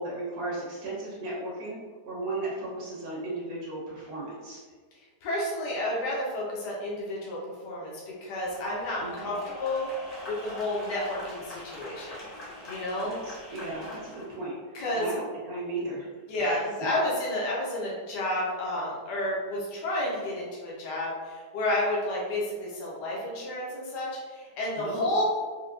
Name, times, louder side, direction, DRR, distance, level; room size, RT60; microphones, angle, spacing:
voice 1, 0.0-1.8 2.0-4.6 9.0-9.3 13.0-16.1 16.4-16.6 24.8-25.1, right 2 dB, 60° right, -7 dB, 1.6 m, -35 dB
voice 2, 5.2-7.4 7.6-7.9 8.2-9.9 10.3-12.2 12.7-13.2 14.7-15.1 16.3-25.3, left 1 dB, 80° left, -5 dB, 1.4 m, -30 dB
sound 1, 8.4-14.3, left 1 dB, 30° left, 0.8 m, -43 dB
4.4 x 2.2 x 2.4 m, 1.5 s
omnidirectional pair, 1.8 m